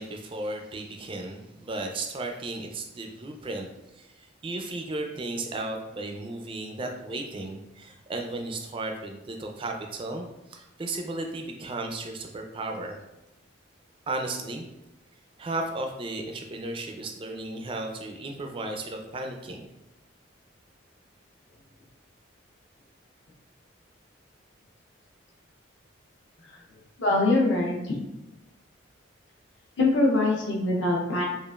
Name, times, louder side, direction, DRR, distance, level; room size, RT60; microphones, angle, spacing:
voice 1, 0.0-3.7 3.9-13.0 14.1-14.7 15.4-19.7, right 2 dB, 25° right, 3 dB, 0.3 m, -35 dB
voice 2, 27.0-28.0 29.8-31.3, left 2 dB, 65° left, -3 dB, 0.6 m, -23 dB
4.9 x 2.4 x 2.3 m, 0.93 s
head